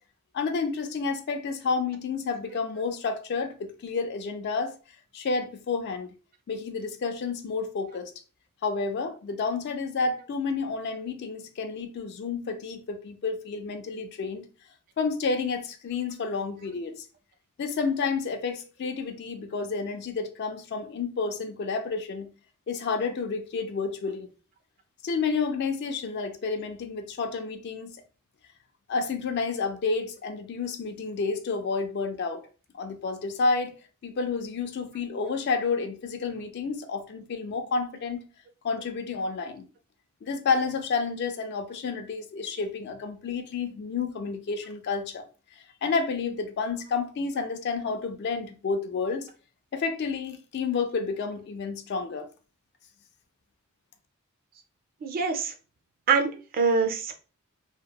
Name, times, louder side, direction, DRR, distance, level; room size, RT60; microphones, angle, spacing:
voice 1, 0.3-4.7 5.1-6.1 6.5-8.1 8.6-14.4 15.0-17.0 17.6-22.3 22.7-24.3 25.0-27.9 28.9-32.4 32.7-33.7 34.0-38.2 38.6-39.6 40.2-45.2 45.8-49.3 49.7-52.3, left 4 dB, 50° left, 0.3 m, -30 dB
voice 2, 55.0-55.5 56.1-57.1, right 5 dB, 45° right, 0.3 m, -24 dB
2.8 x 2.0 x 2.2 m
head